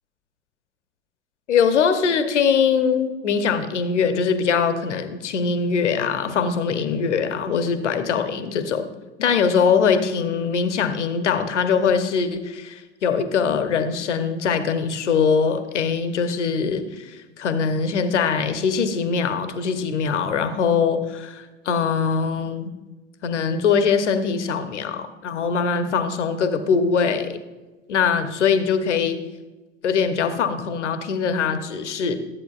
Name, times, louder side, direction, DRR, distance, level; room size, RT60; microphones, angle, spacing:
voice 1, 1.5-8.9 9.2-17.1 17.4-22.7 23.2-27.4 27.9-29.2 29.8-32.2, left 6 dB, 80° left, 9 dB, 0.9 m, -22 dB
13.0 x 8.4 x 2.4 m, 1.2 s
hypercardioid pair, 75°, 35 cm